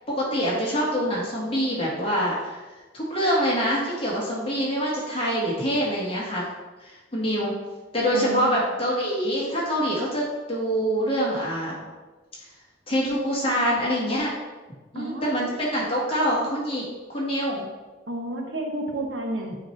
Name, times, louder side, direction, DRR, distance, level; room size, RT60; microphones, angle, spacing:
voice 1, 0.1-2.7 2.9-6.5 6.8-7.5 7.9-11.8 12.9-14.3 14.9-17.7 19.4-19.5, equal, 30° left, -5 dB, 1.6 m, -25 dB
voice 2, 8.1-8.6 14.9-15.3 18.1-19.6, right 2 dB, 70° right, 1 dB, 1.1 m, -31 dB
8.9 x 3.2 x 4.5 m, 1.2 s
head